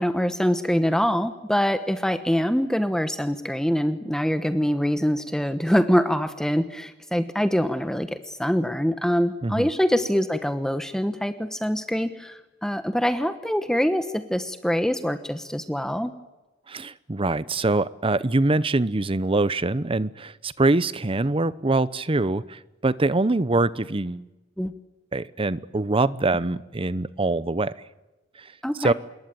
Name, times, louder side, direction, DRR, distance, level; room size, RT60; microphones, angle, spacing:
voice 1, 0.0-16.1 24.6-24.7 28.6-28.9, equal, 5° left, 10 dB, 1.0 m, -24 dB
voice 2, 16.7-24.2 25.1-27.7 28.4-28.5 28.8-28.9, right 2 dB, 30° right, 17 dB, 0.8 m, -24 dB
27.0 x 21.0 x 9.1 m, 1.1 s
head